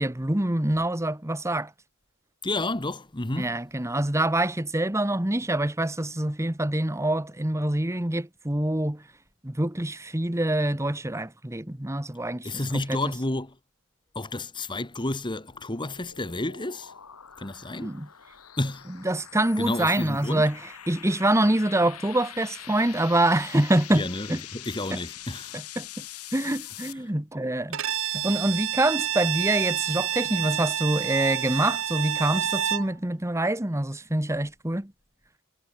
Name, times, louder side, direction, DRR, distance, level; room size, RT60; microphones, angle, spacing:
voice 1, 0.0-1.7 3.3-9.0 9.4-12.5 17.8-18.1 19.0-20.6 20.9-24.4 24.9-25.0 25.5-26.0 26.3-27.8 28.1-34.9, right 1 dB, 15° right, 1.2 m, -25 dB
voice 2, 2.4-3.5 12.4-13.6 14.1-16.9 17.4-17.9 18.6-18.9 19.6-20.4 23.9-25.6, left 2 dB, 20° left, 1.5 m, -31 dB
sound 1, 15.3-26.9, left 11 dB, 85° left, 2.6 m, -44 dB
Bowed string instrument, 27.7-32.9, right 10 dB, 60° right, 1.7 m, -28 dB
head